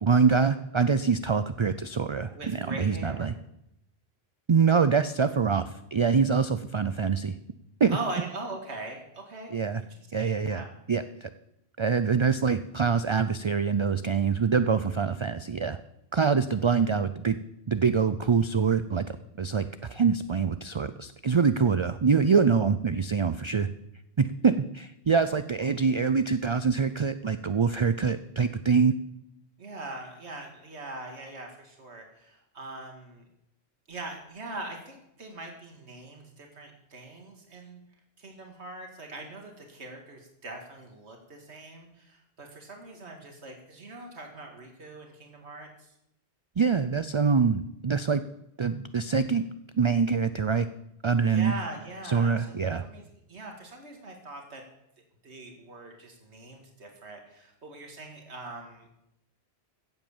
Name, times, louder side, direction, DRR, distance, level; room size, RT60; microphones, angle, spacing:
voice 1, 0.0-3.3 4.5-7.3 7.8-8.0 9.5-9.8 10.1-11.3 11.8-15.8 16.1-17.4 17.7-23.7 24.2-28.9 46.6-48.2 48.6-49.4 49.7-50.7 51.0-51.5 52.1-52.8, right 5 dB, 40° right, 12 dB, 0.4 m, -25 dB
voice 2, 2.3-3.3 7.9-9.5 9.8-9.9 10.1-10.7 25.2-25.7 29.6-33.3 33.9-37.8 38.2-45.9 51.2-54.6 55.2-58.9, right 2 dB, 80° right, 2 dB, 2.3 m, -42 dB
16.0 x 8.1 x 7.2 m, 0.82 s
omnidirectional pair, 1.1 m